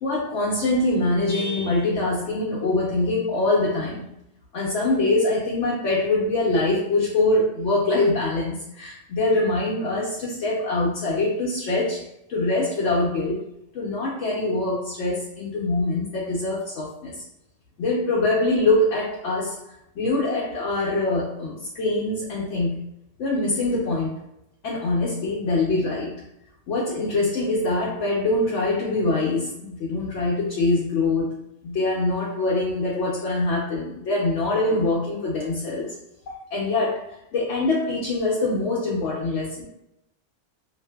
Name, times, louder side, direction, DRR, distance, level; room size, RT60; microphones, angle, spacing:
voice 1, 0.0-4.0 4.5-12.0 12.3-13.4 13.7-17.2 17.8-19.6 20.0-22.8 23.2-24.1 24.6-26.1 26.7-35.9 36.3-39.6, left 2 dB, 80° left, -5 dB, 1.0 m, -24 dB
2.6 x 2.6 x 2.2 m, 0.83 s
omnidirectional pair, 1.2 m